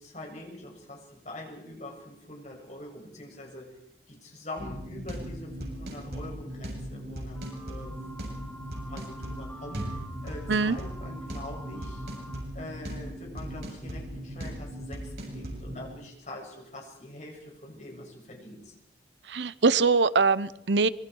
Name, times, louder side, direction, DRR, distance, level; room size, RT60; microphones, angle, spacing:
voice 1, 0.0-3.7 4.1-8.0 8.9-12.1 12.5-18.7, left 1 dB, 45° left, 0 dB, 7.4 m, -44 dB
sound 1, 4.6-15.9, equal, 60° right, 8.0 m, -38 dB
sound 2, 7.3-12.4, right 1 dB, 10° left, 3.0 m, -47 dB
voice 2, 19.3-20.9, right 4 dB, 90° right, 16 dB, 0.8 m, -23 dB
26.5 x 23.5 x 4.7 m, 0.79 s
head